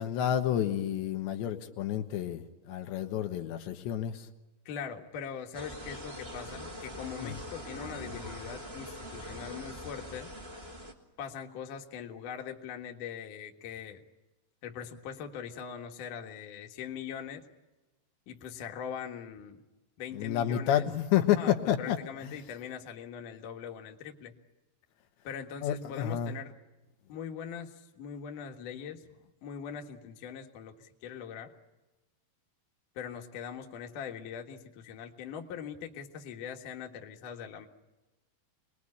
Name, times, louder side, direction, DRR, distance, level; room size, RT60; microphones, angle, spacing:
voice 1, 0.0-4.3 7.2-7.4 20.1-22.3 25.6-26.3, left 10 dB, 80° left, 5 dB, 3.6 m, -30 dB
voice 2, 4.7-10.3 11.2-14.0 14.6-17.4 18.3-19.6 20.0-20.9 21.4-24.3 25.2-26.6 27.1-29.0 29.4-31.5 33.0-37.7, left 7 dB, 55° left, 3 dB, 2.7 m, -41 dB
sound 1, 5.5-10.9, equal, 20° right, 1.8 m, -43 dB
26.5 x 21.0 x 9.8 m, 1.1 s
omnidirectional pair, 5.1 m